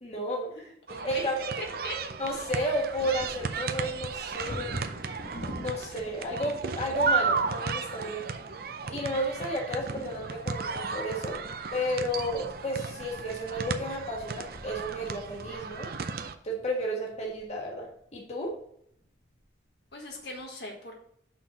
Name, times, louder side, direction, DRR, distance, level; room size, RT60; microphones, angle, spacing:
voice 1, 0.0-0.5 1.0-1.4 2.2-4.7 5.6-8.2 8.9-11.4 11.7-15.9 16.4-18.5, equal, 35° left, -1 dB, 1.4 m, -32 dB
voice 2, 0.6-2.0 19.9-21.0, left 1 dB, 65° left, 1 dB, 1.5 m, -40 dB
sound 1, 0.9-16.3, right 5 dB, 55° right, 0.5 m, -34 dB
Bird vocalization bird call bird song / Wind / Thunder, 2.0-17.9 18.6-18.7 19.0-19.4 19.9-20.4, equal, 90° left, 1.6 m, -48 dB
5.8 x 4.5 x 6.3 m, 0.68 s
head